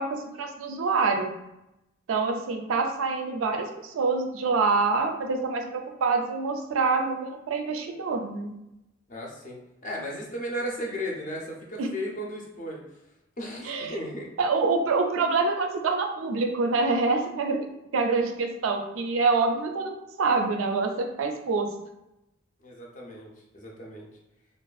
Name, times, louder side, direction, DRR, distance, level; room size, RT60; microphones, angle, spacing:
voice 1, 0.0-1.3 2.1-8.5 11.8-11.9 13.6-14.0 14.4-17.7 17.9-21.7, right 4 dB, 90° right, 4 dB, 0.4 m, -26 dB
voice 2, 9.1-12.8 13.4-14.3 22.6-23.3 23.5-24.1, equal, 40° left, -2 dB, 0.5 m, -35 dB
2.5 x 2.4 x 2.3 m, 0.89 s
head